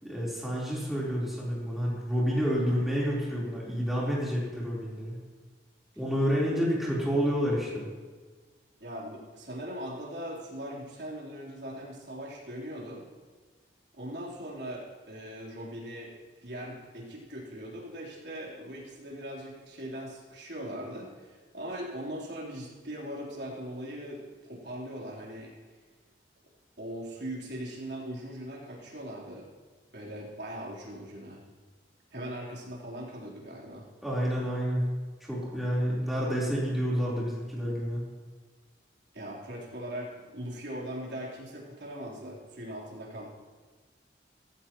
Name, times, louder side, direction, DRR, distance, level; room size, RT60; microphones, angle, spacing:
voice 1, 0.0-5.2 6.0-7.9 34.0-34.9 35.3-38.0, equal, ahead, -7 dB, 4.0 m, -29 dB
voice 2, 8.8-13.0 13.9-16.1 16.4-25.5 26.8-29.5 29.9-31.4 32.1-33.9 39.1-43.3, equal, 65° right, -4 dB, 3.8 m, -40 dB
16.5 x 14.5 x 3.1 m, 1.4 s
head